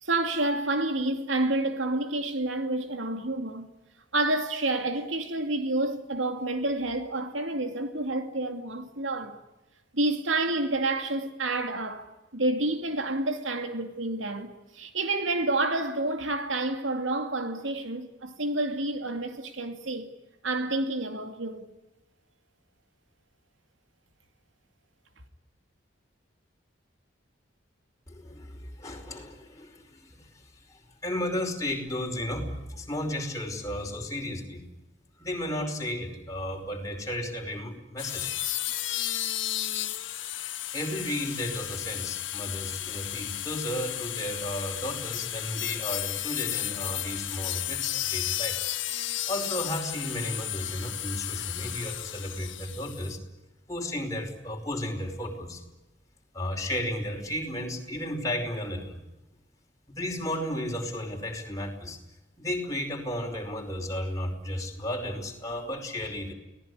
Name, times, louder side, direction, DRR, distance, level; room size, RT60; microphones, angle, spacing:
voice 1, 0.0-3.7 4.1-9.4 9.9-20.1 20.4-21.7, right 2 dB, 85° right, 2.6 m, -29 dB
voice 2, 28.1-30.3 30.7-34.6 35.2-38.3 40.7-48.6 49.3-53.2 53.7-55.6 56.3-59.0 59.9-62.0 62.4-66.3, left 1 dB, 20° left, 5.1 m, -33 dB
sound 1, 38.0-53.2, left 13 dB, 80° left, 1.5 m, -33 dB
29.5 x 19.0 x 9.8 m
head